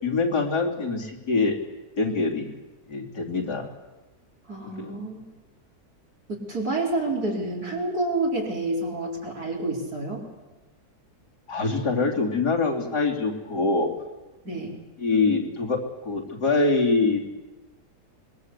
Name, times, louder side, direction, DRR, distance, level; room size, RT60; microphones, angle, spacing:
voice 1, 0.0-1.6 2.0-2.5 2.9-3.6 4.6-4.9 11.5-13.9 15.0-15.8 16.1-17.3, left 3 dB, 85° left, -1 dB, 3.9 m, -24 dB
voice 2, 4.5-5.2 6.3-10.3 14.5-14.7, right 2 dB, 70° right, -2 dB, 5.3 m, -28 dB
25.0 x 21.5 x 8.3 m, 1.1 s
omnidirectional pair, 1.7 m